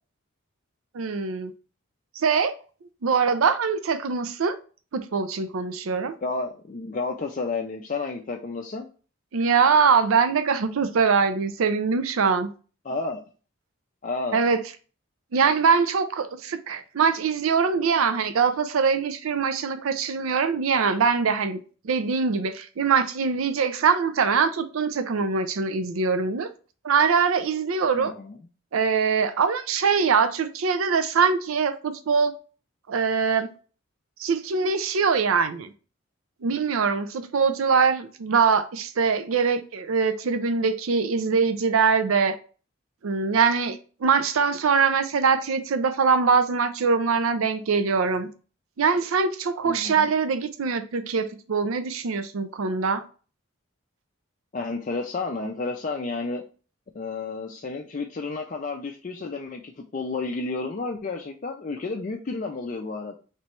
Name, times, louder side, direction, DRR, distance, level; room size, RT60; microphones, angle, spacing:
voice 1, 0.9-1.5 2.2-2.5 3.0-4.6 4.9-6.2 9.3-12.5 14.3-14.6 15.3-26.5 26.8-28.1 28.7-32.3 32.9-33.5 34.2-35.7 36.4-42.3 43.0-48.3 48.8-53.0, right 5 dB, 85° right, 0.5 m, -23 dB
voice 2, 6.2-8.9 12.8-13.2 14.0-14.4 28.0-28.4 49.6-50.1 54.5-56.4 56.9-63.2, left 3 dB, 40° left, 0.4 m, -31 dB
3.3 x 3.0 x 4.3 m
head